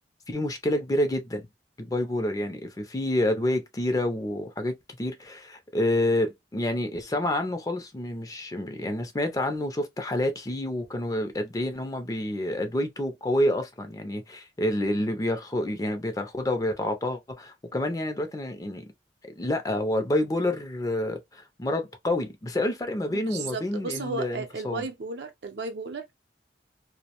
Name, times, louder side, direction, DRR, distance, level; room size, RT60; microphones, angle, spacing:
voice 1, 0.3-1.5 1.8-18.8 19.2-24.9, left 1 dB, 20° left, 0.4 m, -28 dB
voice 2, 23.1-26.1, right 3 dB, 65° right, 0.6 m, -34 dB
2.5 x 2.0 x 2.8 m
head